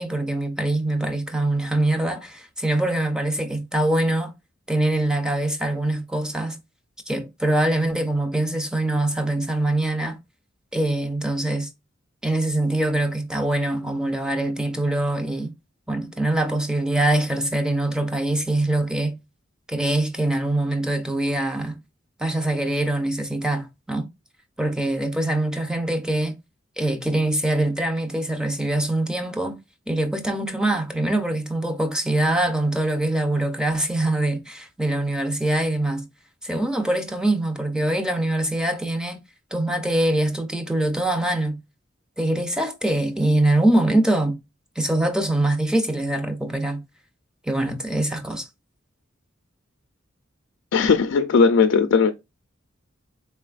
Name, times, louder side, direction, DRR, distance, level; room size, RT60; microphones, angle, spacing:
voice 1, 0.0-4.3 4.7-6.6 7.1-10.2 10.7-11.7 12.2-15.5 15.9-19.2 19.7-21.8 22.2-24.1 24.6-26.4 26.8-29.6 29.9-36.1 36.4-39.2 39.5-41.6 42.2-44.4 44.8-46.8 47.4-48.5, right 1 dB, 5° right, 0.5 m, -23 dB
voice 2, 50.7-52.1, left 5 dB, 85° left, 0.4 m, -17 dB
4.0 x 3.3 x 2.3 m
head